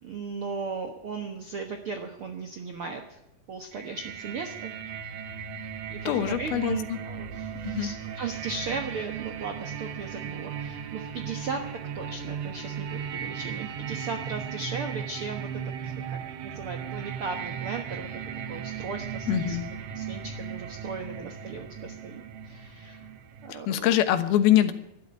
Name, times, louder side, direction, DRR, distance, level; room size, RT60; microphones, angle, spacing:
voice 1, 0.0-3.2 3.5-4.7 5.9-11.7 11.9-18.2 18.5-23.1 23.4-23.9, right 4 dB, 60° right, 5 dB, 1.4 m, -37 dB
sound 1, 3.7-23.5, right 7 dB, 85° right, 1.4 m, -37 dB
voice 2, 6.1-7.0 7.6-7.9 19.3-19.7 23.5-24.7, left 12 dB, 90° left, 10 dB, 3.1 m, -24 dB
12.5 x 12.5 x 8.7 m, 0.89 s
omnidirectional pair, 4.3 m